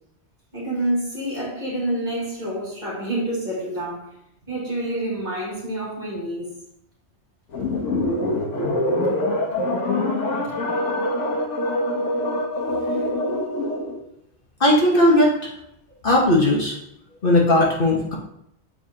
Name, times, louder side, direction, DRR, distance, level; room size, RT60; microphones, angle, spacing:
voice 1, 0.5-4.1 4.4-6.5, right 1 dB, 40° right, -6 dB, 2.7 m, -27 dB
sound 1, 7.5-14.0, left 1 dB, 80° left, 1.5 m, -24 dB
voice 2, 14.6-15.5 16.0-16.8 17.2-18.1, left 1 dB, 50° left, -3 dB, 1.3 m, -17 dB
7.0 x 4.8 x 2.8 m, 0.77 s
omnidirectional pair, 1.2 m